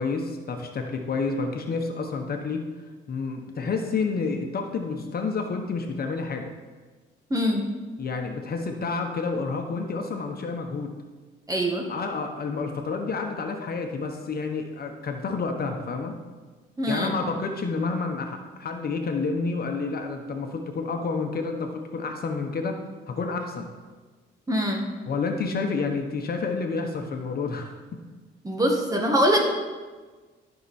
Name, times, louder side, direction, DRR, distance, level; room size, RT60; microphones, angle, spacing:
voice 1, 0.0-2.6 3.1-6.5 8.0-10.9 11.9-16.2 16.9-22.7 23.1-23.7 25.1-28.0, left 4 dB, 50° left, 3 dB, 1.2 m, -29 dB
voice 2, 7.3-7.7 11.5-11.9 16.8-17.1 24.5-24.8 28.4-29.4, equal, 15° right, 1 dB, 1.9 m, -23 dB
14.0 x 6.0 x 4.3 m, 1.4 s
cardioid pair, 90°, 20 cm